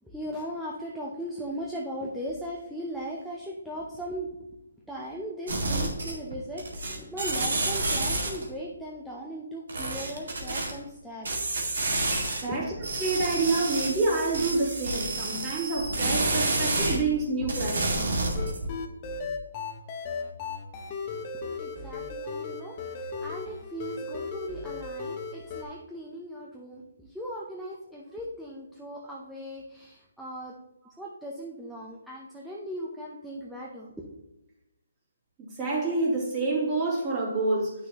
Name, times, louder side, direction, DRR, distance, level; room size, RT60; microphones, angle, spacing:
voice 1, 0.0-4.3 4.9-11.7 12.5-12.8 21.1-21.2 21.6-30.6 31.0-34.0, equal, ahead, -5 dB, 0.7 m, -38 dB
sound 1, 5.5-6.3 6.6-8.5 9.7-10.7 11.2-12.4 12.8-17.0 17.4-18.7, right 2 dB, 75° right, 2.1 m, -29 dB
voice 2, 12.4-12.7 13.0-18.1 35.4-37.7, right 3 dB, 20° right, -5 dB, 2.7 m, -27 dB
sound 2, 18.4-25.6, left 4 dB, 25° left, 0.9 m, -36 dB
9.5 x 6.1 x 2.9 m, 0.94 s
hypercardioid pair, 160°, 0 cm